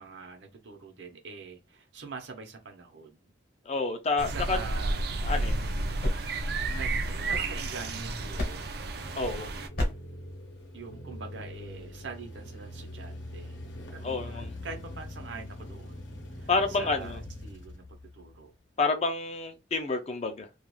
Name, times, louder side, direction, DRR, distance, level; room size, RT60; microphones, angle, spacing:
voice 1, 0.0-3.3 4.3-5.1 6.7-8.6 10.7-13.6 13.9-16.0 16.3-18.5, right 4 dB, 70° right, 0.8 m, -44 dB
voice 2, 3.7-4.6 5.2-5.7 9.2-9.5 14.0-14.5 16.5-17.2 18.8-20.5, left 3 dB, 35° left, 0.4 m, -29 dB
sound 1, 4.2-9.7, right 2 dB, 55° right, 0.4 m, -31 dB
sound 2, 6.0-8.0 8.4-8.9 9.8-10.2, left 1 dB, 50° left, 0.9 m, -34 dB
sound 3, 6.1-18.5, left 1 dB, 80° left, 0.7 m, -44 dB
2.4 x 2.3 x 3.0 m
head